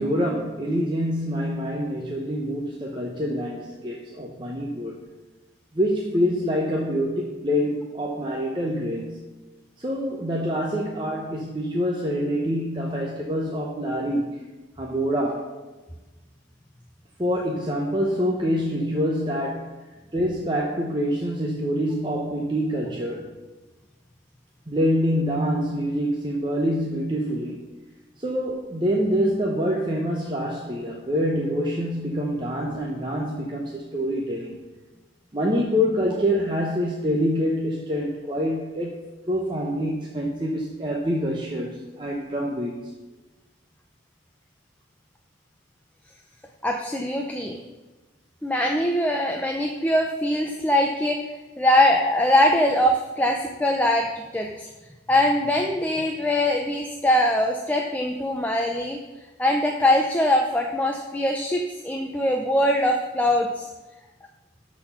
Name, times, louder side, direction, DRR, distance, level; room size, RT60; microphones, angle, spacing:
voice 1, 0.0-5.0 5.7-9.2 9.8-14.4 14.8-15.6 17.2-19.9 20.1-23.3 24.7-27.6 28.2-34.5 35.3-42.9, equal, 25° right, -1 dB, 0.8 m, -26 dB
voice 2, 46.6-47.6 48.4-51.2 51.6-54.7 55.1-59.0 59.4-63.7, left 1 dB, 10° left, 2 dB, 0.5 m, -22 dB
12.5 x 4.3 x 5.6 m, 1.2 s
head